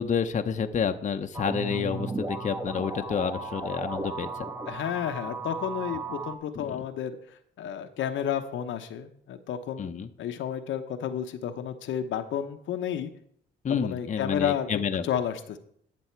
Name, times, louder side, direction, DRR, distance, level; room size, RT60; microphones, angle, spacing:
voice 1, 0.0-4.5 6.6-6.8 9.8-10.1 13.6-15.0, left 6 dB, 40° left, 7 dB, 0.7 m, -29 dB
sound 1, 1.3-6.3, right 3 dB, 15° right, 1.1 m, -35 dB
voice 2, 4.7-13.1 13.7-15.6, left 9 dB, 75° left, 8 dB, 0.8 m, -32 dB
11.5 x 7.0 x 4.5 m, 0.67 s
cardioid pair, 90°, 20 cm